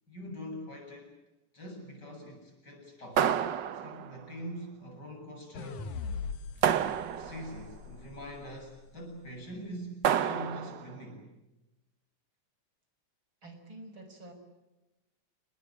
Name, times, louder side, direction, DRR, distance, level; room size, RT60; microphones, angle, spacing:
voice 1, 0.1-1.1 1.5-3.3 3.7-5.9 7.2-11.3, equal, 35° left, 2 dB, 8.5 m, -43 dB
sound 1, 3.2-4.2 6.6-7.6 10.0-10.9, right 9 dB, 70° right, 1.0 m, -29 dB
sound 2, 5.6-8.8, left 5 dB, 80° left, 3.0 m, -41 dB
voice 2, 13.4-14.3, right 1 dB, 40° right, 6 dB, 6.7 m, -48 dB
29.0 x 20.5 x 8.7 m, 1.1 s
omnidirectional pair, 3.4 m